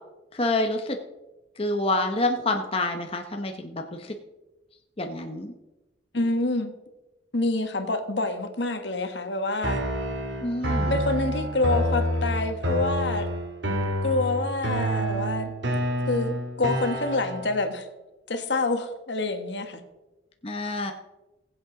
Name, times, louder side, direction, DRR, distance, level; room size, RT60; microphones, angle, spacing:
voice 1, 0.3-1.0 1.6-4.1 5.0-5.5 10.4-11.0 20.4-20.9, left 2 dB, 30° left, 4 dB, 0.9 m, -27 dB
voice 2, 6.1-6.7 7.3-9.8 10.9-13.3 14.0-15.5 16.1-16.3 16.6-17.9 18.3-19.8, left 2 dB, 70° left, 7 dB, 1.4 m, -27 dB
sound 1, 9.6-17.6, equal, 80° right, 2.0 m, -28 dB
20.5 x 8.0 x 3.9 m, 1.0 s
head